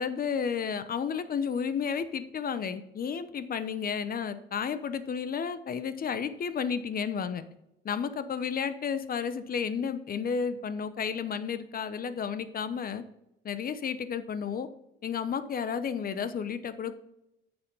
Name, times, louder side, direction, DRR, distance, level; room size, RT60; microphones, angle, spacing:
voice 1, 0.0-7.4 7.8-13.0 13.4-14.7 15.0-16.9, left 6 dB, 45° left, 12 dB, 0.9 m, -32 dB
8.7 x 7.2 x 5.4 m, 0.86 s
cardioid pair, 90°, 20 cm